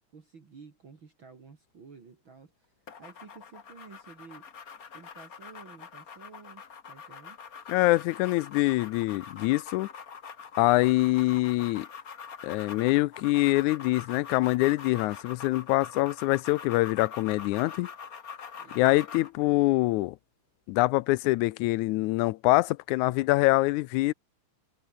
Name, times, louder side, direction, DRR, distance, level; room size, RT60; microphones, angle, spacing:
voice 1, 0.1-4.5 4.9-7.4 18.5-19.3, right 5 dB, 45° right, 3.4 m, -52 dB
sound 1, 2.9-19.4, left 6 dB, 40° left, 1.5 m, -44 dB
voice 2, 7.7-9.9 10.6-11.9 12.4-17.9 18.8-20.2 20.7-24.1, left 20 dB, 90° left, 2.0 m, -24 dB
omnidirectional pair, 3.3 m